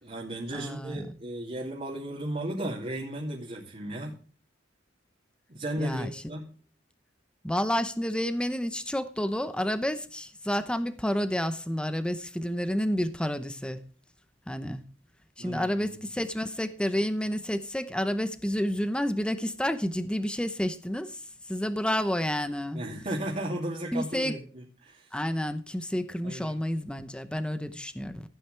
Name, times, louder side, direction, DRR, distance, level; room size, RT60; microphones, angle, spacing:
voice 1, 0.0-4.2 5.5-6.5 15.4-16.0 22.7-25.1 26.2-26.6, right 1 dB, 40° right, 2.6 m, -35 dB
voice 2, 0.5-1.0 5.8-6.2 7.4-13.8 14.5-14.8 15.4-21.2 21.5-22.8 23.9-24.4 25.1-28.2, equal, 5° left, 0.8 m, -30 dB
16.0 x 9.2 x 3.3 m
head